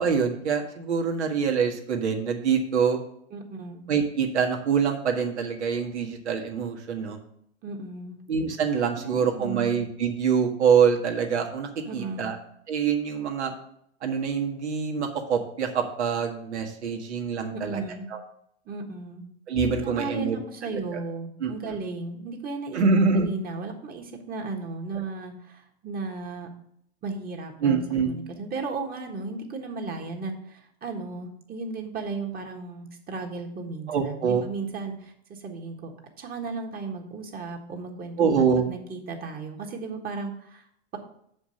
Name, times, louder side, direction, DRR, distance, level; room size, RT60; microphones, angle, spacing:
voice 1, 0.0-3.0 3.9-7.2 8.3-12.4 12.7-13.5 14.0-17.8 18.1-18.2 19.5-20.4 20.7-21.0 21.4-21.7 22.7-23.3 27.6-28.1 33.9-34.4 38.2-38.6, right 6 dB, 80° right, 2 dB, 1.7 m, -25 dB
voice 2, 3.3-3.9 7.6-8.2 9.0-9.7 11.8-12.4 17.5-18.0 18.6-19.2 19.8-22.8 23.1-26.5 27.0-35.9 36.2-40.6, right 3 dB, 25° right, 3 dB, 1.5 m, -35 dB
6.7 x 5.2 x 6.5 m, 0.70 s
hypercardioid pair, 110°, 33 cm